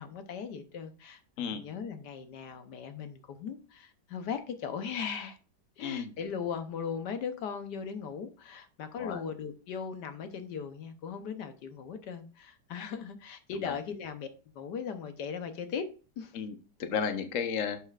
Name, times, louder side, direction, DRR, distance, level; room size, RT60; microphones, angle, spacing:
voice 1, 0.0-5.4 5.8-14.3 14.5-15.8 16.2-16.3, left 6 dB, 75° left, 1.5 m, -38 dB
voice 2, 5.8-6.1 9.0-9.2 13.6-13.7 16.3-17.8, left 7 dB, 55° left, 1.2 m, -33 dB
11.0 x 6.6 x 2.4 m
omnidirectional pair, 1.9 m